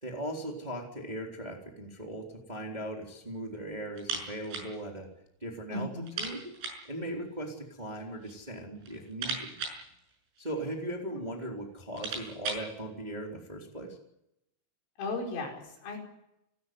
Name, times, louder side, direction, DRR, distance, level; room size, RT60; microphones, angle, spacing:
voice 1, 0.0-5.1 5.4-5.9 6.2-6.5 6.8-9.5 10.4-14.0, right 1 dB, 10° right, 0 dB, 3.1 m, -38 dB
sound 1, 4.0-4.7 5.0-5.1 5.4-5.5 6.0-6.9 7.8-8.4 8.8-10.7 11.4-11.5 11.8-12.7, right 4 dB, 70° right, 8.7 m, -38 dB
voice 2, 5.7-6.1 11.1-11.3 15.0-16.0, left 2 dB, 70° left, 1 dB, 7.4 m, -36 dB
30.0 x 13.5 x 9.6 m, 0.84 s
omnidirectional pair, 5.9 m